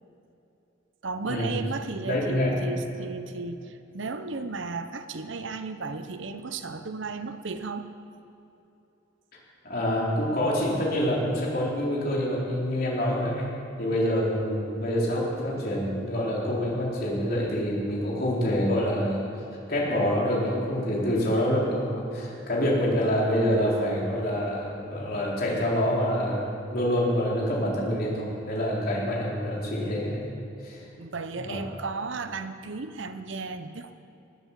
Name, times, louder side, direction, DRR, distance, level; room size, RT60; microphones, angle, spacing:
voice 1, 1.0-7.9 30.8-33.9, right 3 dB, 65° right, 9 dB, 0.8 m, -34 dB
voice 2, 2.0-2.6 9.6-13.5 13.8-19.2 19.7-30.2 30.6-30.8 31.3-31.6, equal, 50° left, -5 dB, 4.1 m, -26 dB
18.5 x 8.5 x 7.4 m, 2.9 s
head